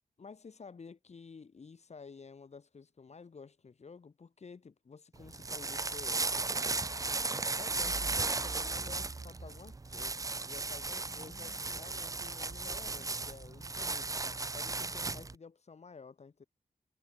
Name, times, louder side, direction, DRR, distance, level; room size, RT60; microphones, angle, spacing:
voice 1, 0.2-14.1 14.5-16.4, left 5 dB, 50° left, 5.9 m, -52 dB
sound 1, 5.1-15.3, right 3 dB, 25° right, 0.8 m, -36 dB
wide cardioid pair, 145°, 14 cm